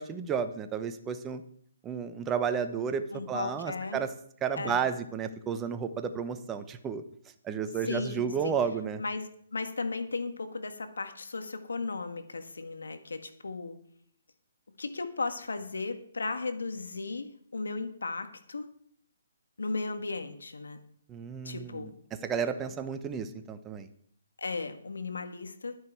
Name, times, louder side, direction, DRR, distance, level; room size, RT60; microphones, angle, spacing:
voice 1, 0.0-1.4 1.8-4.1 4.4-7.0 7.4-9.0 21.1-21.9 22.2-23.9, right 7 dB, 15° right, 9 dB, 0.9 m, -32 dB
voice 2, 3.1-4.0 4.6-4.9 7.8-8.5 9.0-13.7 14.8-18.7 19.6-20.8 21.4-21.9 24.4-25.8, left 3 dB, 85° left, 8 dB, 1.6 m, -36 dB
11.0 x 9.6 x 4.6 m, 0.64 s
hypercardioid pair, 145°, 0 cm